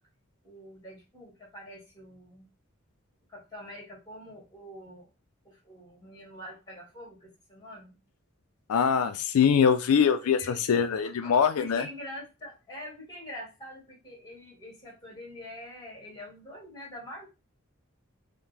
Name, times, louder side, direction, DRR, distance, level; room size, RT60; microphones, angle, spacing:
voice 1, 0.4-2.5 3.3-5.1 5.4-7.9 10.2-10.6 11.0-17.2, left 1 dB, 20° left, -2 dB, 1.6 m, -45 dB
voice 2, 8.7-11.9, left 7 dB, 85° left, 8 dB, 0.4 m, -23 dB
5.7 x 2.1 x 3.2 m, 0.29 s
head